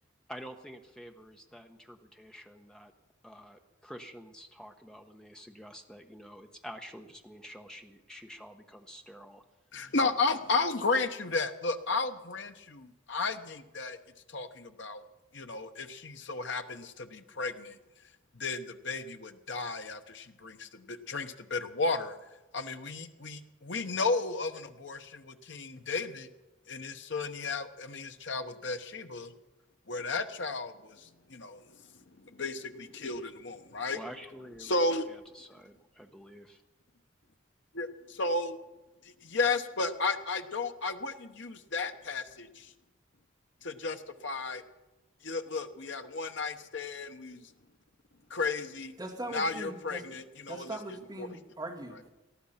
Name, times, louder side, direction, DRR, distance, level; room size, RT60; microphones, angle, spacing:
voice 1, 0.3-2.9 3.2-9.4 10.0-10.2 33.9-34.8 35.1-36.6, equal, 5° left, 4 dB, 1.0 m, -48 dB
voice 2, 9.7-14.0 14.3-15.0 15.3-17.8 18.3-22.2 22.5-26.3 26.7-29.3 29.9-31.8 32.2-34.0 34.6-35.1 37.7-38.6 39.0-42.7 43.6-44.6 45.2-47.5 48.3-48.9 49.3-51.3, left 3 dB, 60° left, 7 dB, 1.0 m, -34 dB
voice 3, 49.0-50.0 50.5-52.1, right 1 dB, 20° right, -1 dB, 2.2 m, -40 dB
18.5 x 13.5 x 5.8 m, 1.1 s
head